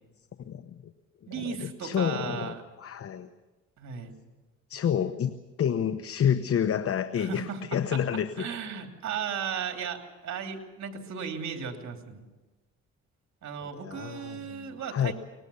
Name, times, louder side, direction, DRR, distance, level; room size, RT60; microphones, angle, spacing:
voice 1, 0.5-0.8 1.3-3.3 4.7-8.5 13.7-15.1, left 8 dB, 50° left, 11 dB, 1.0 m, -29 dB
voice 2, 1.3-2.6 3.8-4.2 7.2-7.6 7.9-8.0 8.4-12.3 13.4-15.1, right 7 dB, 65° right, 4 dB, 2.9 m, -36 dB
23.0 x 20.0 x 7.0 m, 1.2 s
cardioid pair, 90°, 30 cm